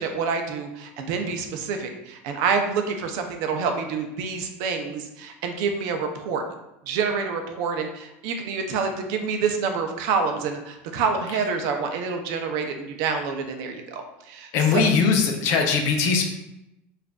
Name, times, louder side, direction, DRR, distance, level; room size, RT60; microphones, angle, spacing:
voice 1, 0.0-6.4 6.9-14.8, right 5 dB, 65° right, 5 dB, 0.5 m, -27 dB
voice 2, 14.5-16.2, left 5 dB, 55° left, 3 dB, 0.6 m, -20 dB
4.8 x 2.5 x 2.3 m, 0.89 s
supercardioid pair, 125°, 6 cm